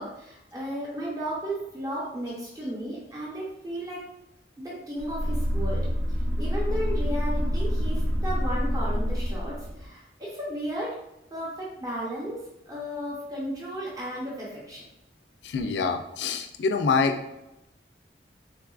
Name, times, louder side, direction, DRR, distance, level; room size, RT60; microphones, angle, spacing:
voice 1, 0.0-4.0 4.6-5.9 6.4-10.9 11.3-14.8, equal, 20° right, -6 dB, 0.6 m, -34 dB
sound 1, 5.0-9.9, equal, 85° right, 0.5 m, -27 dB
voice 2, 15.4-17.2, left 4 dB, 75° left, 6 dB, 0.3 m, -25 dB
3.7 x 2.3 x 2.3 m, 0.89 s
head